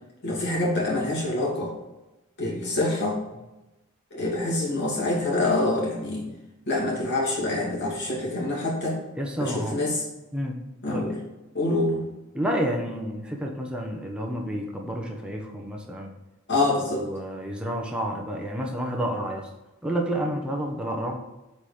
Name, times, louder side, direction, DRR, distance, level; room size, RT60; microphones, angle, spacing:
voice 1, 0.2-1.7 2.4-3.2 4.1-6.3 6.7-9.0 9.4-10.1 10.8-11.2 11.5-12.1 16.5-17.0, left 2 dB, 55° left, -4 dB, 2.7 m, -26 dB
voice 2, 9.2-9.8 10.3-10.6 10.9-11.0 12.3-16.1 16.9-19.5 19.8-21.2, equal, 5° right, 0 dB, 1.0 m, -30 dB
8.3 x 4.3 x 5.1 m, 1.0 s
head